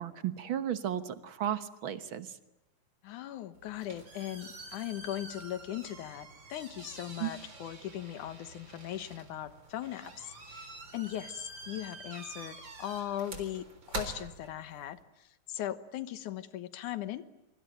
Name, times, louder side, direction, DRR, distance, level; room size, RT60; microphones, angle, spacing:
voice 1, 0.0-2.3 7.2-7.3, right 10 dB, 55° right, 12 dB, 1.5 m, -34 dB
voice 2, 3.0-17.2, left 12 dB, 85° left, 13 dB, 2.7 m, -39 dB
sound 1, 3.5-15.0, right 3 dB, 40° right, 4.4 m, -46 dB
25.5 x 24.0 x 9.0 m, 0.90 s
omnidirectional pair, 3.4 m